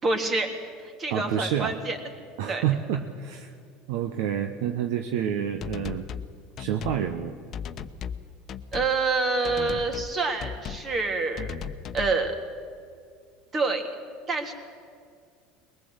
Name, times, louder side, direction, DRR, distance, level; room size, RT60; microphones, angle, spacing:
voice 1, 0.0-0.5 0.8-2.0 2.5-2.6 8.7-11.5 11.9-12.4 13.5-13.8 14.3-14.5, right 3 dB, 35° right, 4 dB, 3.4 m, -27 dB
voice 2, 1.1-1.8 2.4-3.5 3.9-6.1 6.6-7.3, right 9 dB, 70° right, 6 dB, 1.1 m, -28 dB
sound 1, 5.6-6.3 6.6-7.0 7.5-8.2 8.5-8.9 9.4-10.1 10.4-10.9 11.4-12.2, left 7 dB, 45° left, 1.0 m, -36 dB
22.0 x 19.5 x 8.1 m, 2.2 s
hypercardioid pair, 80°, 0 cm